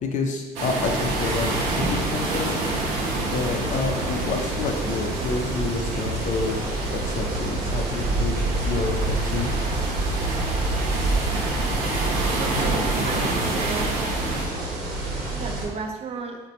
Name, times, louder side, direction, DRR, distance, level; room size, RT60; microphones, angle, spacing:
voice 1, 0.0-2.5 3.3-6.5 6.9-8.3 8.6-9.5, left 4 dB, 45° left, 3 dB, 0.5 m, -28 dB
sound 1, 0.6-14.5, right 2 dB, 85° right, 0.6 m, -29 dB
sound 2, 0.8-15.7, right 2 dB, 65° right, 0.9 m, -28 dB
voice 2, 12.4-14.0 15.3-16.4, right 4 dB, 40° right, 3 dB, 0.4 m, -33 dB
4.0 x 2.1 x 2.7 m, 1.3 s
cardioid pair, 110°, 17 cm